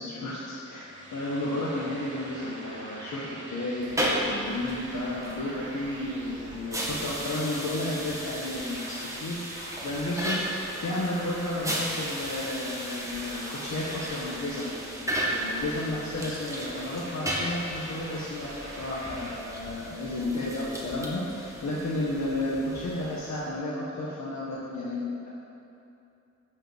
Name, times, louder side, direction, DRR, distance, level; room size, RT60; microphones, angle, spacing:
voice 1, 0.0-10.4 10.8-14.7 15.0-25.3, left 1 dB, 70° left, -6 dB, 1.8 m, -32 dB
sound 1, 0.8-19.4, right 1 dB, 40° right, 2.9 m, -44 dB
sound 2, 3.8-23.4, right 1 dB, 10° right, 1.9 m, -35 dB
13.0 x 6.6 x 8.3 m, 2.7 s
wide cardioid pair, 125°, 29 cm